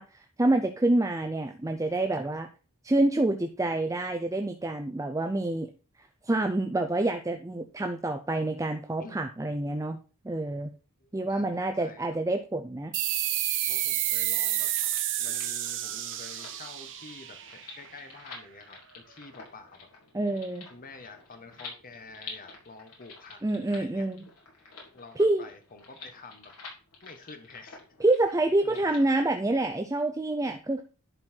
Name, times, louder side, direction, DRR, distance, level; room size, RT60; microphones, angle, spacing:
voice 1, 0.0-2.5 2.8-5.7 6.3-10.0 10.2-10.7 11.1-12.9 20.1-20.7 23.4-24.2 25.2-25.4 28.0-30.8, right 2 dB, 15° right, 6 dB, 0.5 m, -27 dB
voice 2, 11.0-12.2 13.7-14.7 15.2-19.9 20.7-23.4 23.7-24.1 24.9-26.5 27.0-27.8 28.6-28.8, left 3 dB, 40° left, 6 dB, 1.4 m, -48 dB
sound 1, 12.9-18.1, right 12 dB, 55° right, 1.0 m, -30 dB
sound 2, 14.3-29.1, left 4 dB, 75° left, 3.4 m, -49 dB
11.0 x 4.5 x 4.5 m, 0.36 s
head